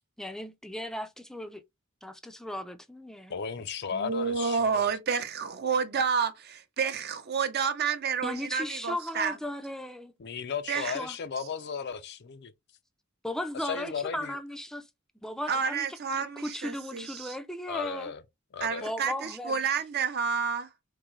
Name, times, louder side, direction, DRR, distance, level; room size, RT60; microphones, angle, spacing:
voice 1, 0.2-1.6 2.0-3.4 8.2-10.1 10.7-11.2 13.2-14.9 15.2-15.9 16.1-18.1 18.8-19.6, left 1 dB, 5° left, 0.4 m, -36 dB
voice 2, 3.3-4.9 10.2-12.5 13.6-14.4 17.7-18.2 18.5-18.9, left 6 dB, 55° left, 0.5 m, -35 dB
voice 3, 3.9-9.4 10.7-11.0 15.5-17.3 18.6-20.7, right 6 dB, 50° right, 0.6 m, -30 dB
3.7 x 2.7 x 3.1 m
head